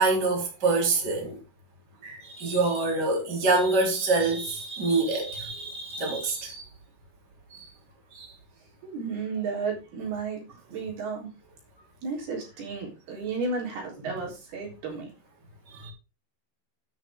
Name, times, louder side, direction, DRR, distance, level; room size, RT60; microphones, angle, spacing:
voice 1, 0.0-1.4 2.0-6.6 7.5-7.7 8.1-8.3 15.7-15.9, right 3 dB, 25° right, 4.1 m, -26 dB
voice 2, 8.8-11.3 12.0-15.1, right 4 dB, 70° right, 5.8 m, -33 dB
9.9 x 9.7 x 3.6 m
omnidirectional pair, 4.6 m